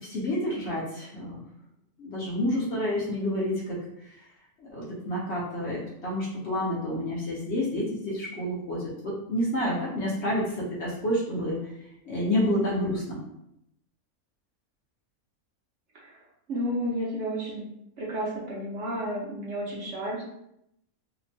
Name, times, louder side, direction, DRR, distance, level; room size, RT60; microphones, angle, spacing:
voice 1, 0.0-1.4 2.0-3.8 4.7-11.7 12.0-13.2, left 1 dB, 60° left, -5 dB, 0.8 m, -29 dB
voice 2, 16.5-17.6 18.0-20.3, equal, 60° right, -5 dB, 0.9 m, -31 dB
2.8 x 2.1 x 2.6 m, 0.79 s
omnidirectional pair, 1.6 m